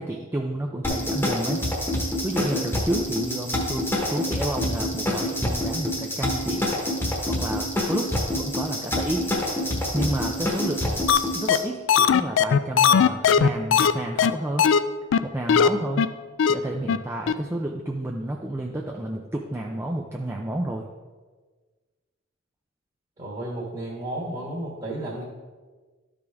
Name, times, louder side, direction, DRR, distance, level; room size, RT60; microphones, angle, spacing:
voice 1, 0.0-1.6 2.2-6.7 7.3-9.2 9.9-11.0 11.3-14.7 15.2-16.1 16.5-20.9, right 1 dB, 10° right, 0 dB, 0.4 m, -30 dB
sound 1, 0.8-11.6, left 1 dB, 10° left, 1.2 m, -27 dB
sound 2, 11.1-11.2 11.5-11.6 11.9-13.9 14.2-14.3 14.6-14.8 15.1-15.2 15.5-15.7 16.0-16.1 16.4-16.5 16.9-17.0 17.3-17.4, left 7 dB, 65° left, 0.3 m, -17 dB
voice 2, 23.2-25.2, right 1 dB, 30° right, -5 dB, 1.4 m, -32 dB
12.0 x 5.1 x 3.5 m, 1.4 s
head